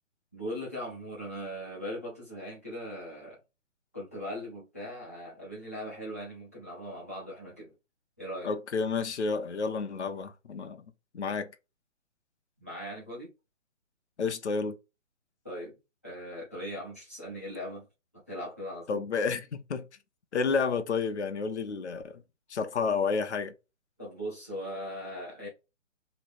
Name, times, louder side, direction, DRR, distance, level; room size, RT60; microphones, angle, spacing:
voice 1, 0.3-3.4 3.9-7.7 8.2-8.5 12.6-13.3 15.4-15.7 16.0-17.9 18.1-19.0 24.0-25.5, equal, 10° left, 0.7 m, -39 dB
voice 2, 8.4-10.8 11.1-11.5 14.2-14.8 18.9-19.9 20.3-22.2 22.5-23.5, left 5 dB, 60° left, 0.7 m, -30 dB
3.1 x 2.9 x 4.2 m
hypercardioid pair, 180°, 38 cm